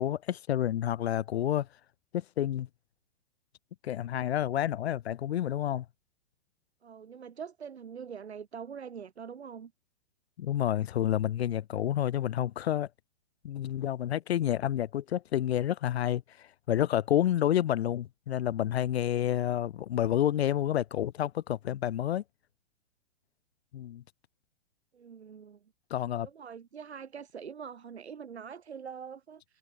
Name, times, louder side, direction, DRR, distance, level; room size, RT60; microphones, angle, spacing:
voice 1, 0.0-1.7 2.1-2.7 3.8-5.9 10.4-12.9 13.4-22.2 23.7-24.0 25.9-26.3, left 11 dB, 70° left, 0.5 m, -29 dB
voice 2, 6.8-9.7 24.9-25.6 26.2-29.6, right 7 dB, 75° right, 1.2 m, -44 dB
figure-of-eight pair, 110°, 33 cm